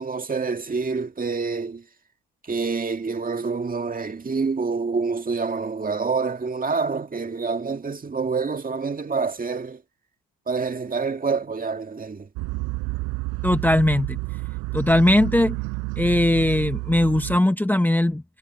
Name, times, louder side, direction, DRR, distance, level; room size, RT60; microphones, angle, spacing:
voice 1, 0.0-1.8 2.4-9.8 10.5-12.3, right 4 dB, 25° right, 1.9 m, -27 dB
sound 1, 12.4-17.4, right 24 dB, 90° right, 4.9 m, -30 dB
voice 2, 13.4-14.2 14.7-15.6 16.0-18.2, left 1 dB, 5° left, 1.2 m, -19 dB
cardioid pair, 100°, 37 cm